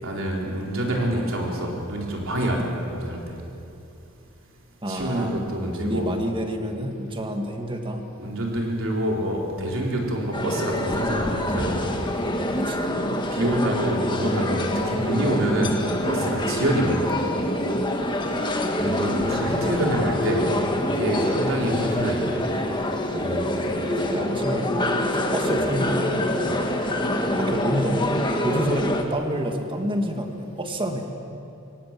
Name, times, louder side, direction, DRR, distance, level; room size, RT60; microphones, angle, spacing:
voice 1, 0.0-3.2 4.9-6.1 8.2-11.7 13.3-17.2 18.8-20.4 20.8-22.2 23.2-23.6 26.4-26.5, right 1 dB, 70° right, -1 dB, 4.3 m, -26 dB
voice 2, 4.8-5.4 5.8-8.0 12.6-12.9 18.8-19.8 23.9-26.2 27.3-28.1 28.4-31.0, equal, 25° right, 3 dB, 2.0 m, -29 dB
sound 1, 10.3-29.0, left 1 dB, 20° left, 1.6 m, -25 dB
24.5 x 18.0 x 7.6 m, 2.8 s
head